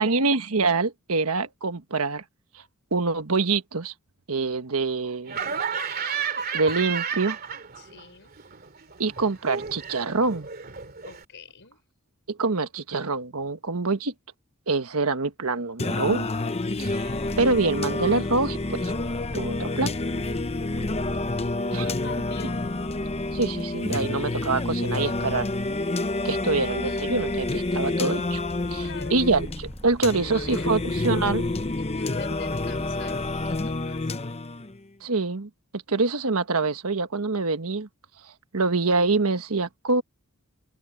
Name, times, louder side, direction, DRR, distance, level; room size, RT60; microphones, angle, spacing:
voice 1, 0.0-2.2 2.5-2.6 2.9-3.9 4.3-5.4 6.0-6.2 6.5-7.4 9.0-10.5 12.3-14.1 14.7-16.3 16.8-18.9 19.3-19.9 21.7-21.8 23.3-25.5 26.2-28.4 28.7-28.8 29.1-31.5 35.0-37.9 38.5-40.0, right 3 dB, 85° right, 1.4 m, -25 dB
Laughter, 5.3-8.0 8.3-11.2, right 7 dB, 45° right, 2.5 m, -32 dB
voice 2, 7.8-8.3 11.0-11.8 21.7-22.6 28.8-29.2 30.3-30.7 31.8-34.2, left 4 dB, 60° left, 5.6 m, -43 dB
Singing, 15.8-34.8, left 2 dB, 30° left, 0.8 m, -29 dB
Purr, 16.5-34.1, equal, 5° left, 1.6 m, -41 dB
head